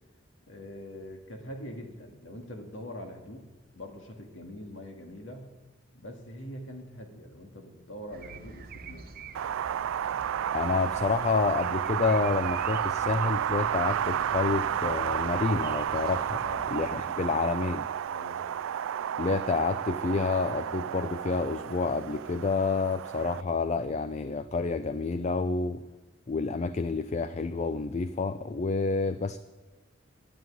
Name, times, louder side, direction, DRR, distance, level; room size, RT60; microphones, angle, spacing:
voice 1, 0.5-3.5 3.8-5.5 5.9-9.1 16.4-16.8 18.1-18.6, left 1 dB, 75° left, 3 dB, 2.1 m, -43 dB
sound 1, 8.1-16.9, right 4 dB, 45° right, 0.7 m, -47 dB
Wind, 9.3-23.4, right 9 dB, 85° right, 0.3 m, -31 dB
voice 2, 10.5-16.4 16.7-17.9 19.2-25.8 26.3-29.4, left 4 dB, 35° left, 12 dB, 0.4 m, -29 dB
10.5 x 9.3 x 9.4 m, 1.2 s
head